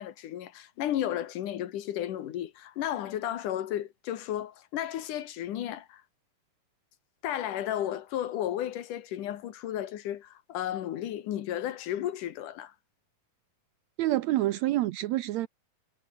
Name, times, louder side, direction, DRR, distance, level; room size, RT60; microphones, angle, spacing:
voice 1, 0.0-6.0 7.2-12.7, left 11 dB, 70° left, 2.8 m, -33 dB
voice 2, 14.0-15.5, right 15 dB, 80° right, 1.6 m, -27 dB
omnidirectional pair, 4.0 m